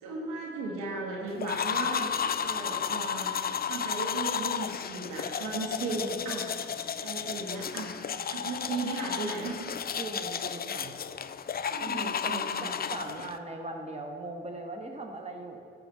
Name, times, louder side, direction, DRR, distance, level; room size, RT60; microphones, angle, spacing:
voice 1, 0.0-6.4 7.0-7.9 8.3-9.6 11.7-12.7, right 3 dB, 75° right, -2 dB, 1.7 m, -36 dB
sound 1, 1.4-13.4, left 7 dB, 30° left, 0.5 m, -33 dB
voice 2, 5.8-6.2 10.0-10.9 11.8-15.6, right 2 dB, 20° right, 2 dB, 1.4 m, -39 dB
12.0 x 4.1 x 7.0 m, 2.3 s
hypercardioid pair, 40°, 30 cm